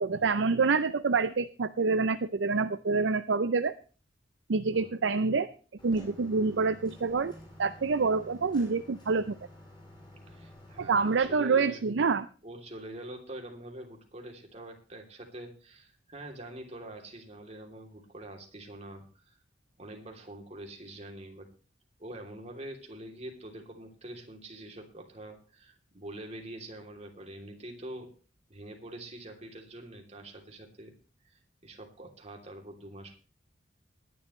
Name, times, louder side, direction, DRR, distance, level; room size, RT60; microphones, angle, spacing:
voice 1, 0.0-3.7 4.5-5.5 5.8-7.3 7.6-9.4 10.8-12.3, right 4 dB, 75° right, 11 dB, 0.6 m, -27 dB
voice 2, 4.7-5.1 10.3-11.8 12.4-19.4 19.8-21.5 22.0-28.1 28.5-30.9 31.3-33.2, right 1 dB, 35° right, 2 dB, 3.0 m, -45 dB
sound 1, 5.8-11.3, left 1 dB, 25° left, 6.1 m, -51 dB
20.0 x 11.0 x 3.2 m, 0.37 s
head